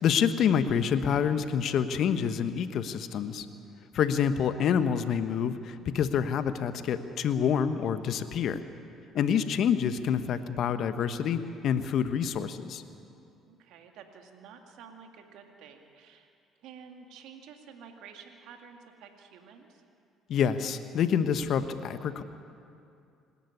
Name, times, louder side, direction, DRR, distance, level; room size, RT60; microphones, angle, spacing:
voice 1, 0.0-3.5 3.9-8.6 9.1-12.8 20.3-22.2, left 7 dB, 60° left, 11 dB, 1.0 m, -27 dB
voice 2, 9.2-9.5 13.5-16.3 16.6-19.8, right 6 dB, 70° right, 4 dB, 2.1 m, -51 dB
25.5 x 11.5 x 9.7 m, 2.5 s
hypercardioid pair, 55°, 0 cm